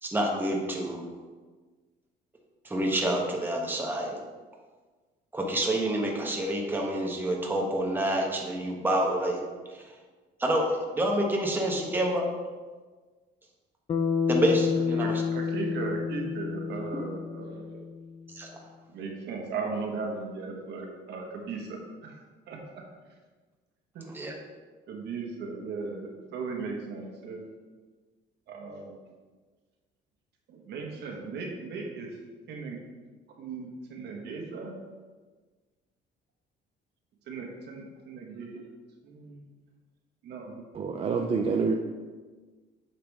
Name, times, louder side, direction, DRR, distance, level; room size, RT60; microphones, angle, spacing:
voice 1, 0.0-1.0 2.6-4.2 5.3-9.4 9.7-9.8 10.4-12.3 14.3-15.1 18.3-18.5 24.1-24.3, right 1 dB, 10° right, 0 dB, 1.1 m, -28 dB
Bass guitar, 13.9-18.3, left 6 dB, 30° left, 0.5 m, -29 dB
voice 2, 14.7-17.9 18.9-22.2 22.5-22.6 23.9-24.0 24.9-27.4 28.5-29.0 30.5-32.1 32.5-32.8 33.4-34.7 37.3-38.6 39.0-39.4 40.2-40.6, right 4 dB, 70° right, 0 dB, 1.6 m, -37 dB
voice 3, 40.7-41.7, right 5 dB, 35° right, 3 dB, 0.5 m, -27 dB
8.6 x 5.8 x 3.6 m, 1.4 s
cardioid pair, 140°, 18 cm